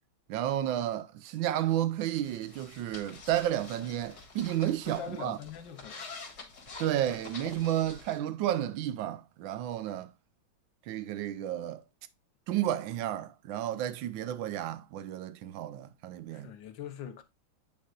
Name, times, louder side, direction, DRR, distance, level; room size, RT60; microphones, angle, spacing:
voice 1, 0.3-5.4 6.8-10.1 10.9-11.8 12.5-16.5, right 12 dB, 80° right, 1.4 m, -32 dB
sound 1, 2.2-8.2, left 4 dB, 55° left, 2.2 m, -47 dB
voice 2, 4.6-6.1 16.3-17.2, left 8 dB, 70° left, 1.6 m, -43 dB
9.1 x 4.6 x 2.4 m
omnidirectional pair, 2.1 m